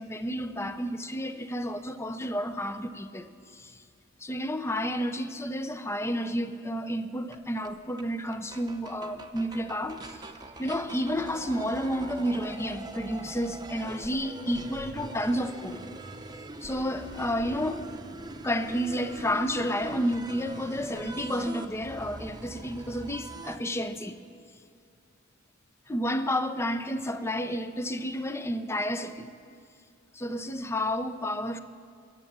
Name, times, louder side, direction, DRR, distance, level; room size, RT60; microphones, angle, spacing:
voice 1, 0.0-3.3 3.5-3.7 4.2-10.2 10.6-15.9 16.6-17.9 18.4-24.2 25.9-29.3 30.1-31.6, equal, 15° left, 0.6 m, -31 dB
sound 1, 7.3-7.4 7.6-7.7 8.0-8.1 8.3-23.6, right 2 dB, 20° right, 0.8 m, -43 dB
22.0 x 8.0 x 7.4 m
head